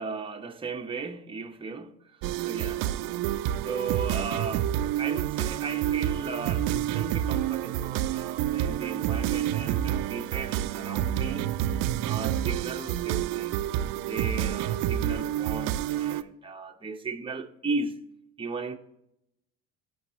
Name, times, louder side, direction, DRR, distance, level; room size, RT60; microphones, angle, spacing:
voice 1, 0.0-2.0 2.5-2.9 3.6-11.5 12.0-13.5 13.9-18.0 18.4-18.8, right 4 dB, 15° right, 1.0 m, -36 dB
sound 1, 2.2-16.2, right 12 dB, 70° right, 0.6 m, -28 dB
16.5 x 6.2 x 3.2 m
supercardioid pair, 85°, 35 cm